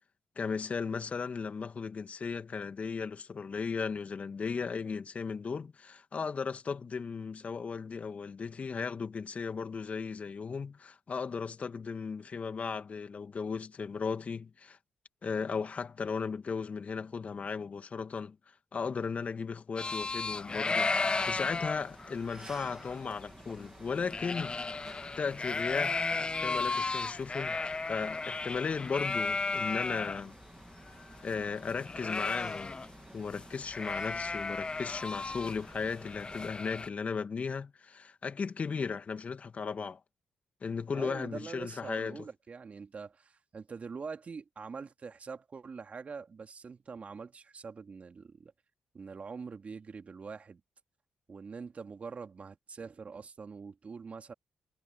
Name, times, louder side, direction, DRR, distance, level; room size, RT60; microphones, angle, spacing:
voice 1, 0.4-14.8 15.2-18.4 18.7-24.6 25.2-26.1 26.4-27.6 27.9-30.3 31.2-32.8 33.1-40.0 40.6-42.2, left 5 dB, 45° left, 2.5 m, -36 dB
sound 1, 19.8-30.2 30.6-30.7 30.9-33.0 33.3-33.4 33.7-36.9, left 3 dB, 30° left, 0.6 m, -35 dB
sound 2, 21.0-36.5, right 2 dB, 20° right, 2.9 m, -53 dB
voice 2, 40.9-48.5 48.9-50.6 51.3-54.3, right 5 dB, 45° right, 2.9 m, -44 dB
hypercardioid pair, 45°, 3 cm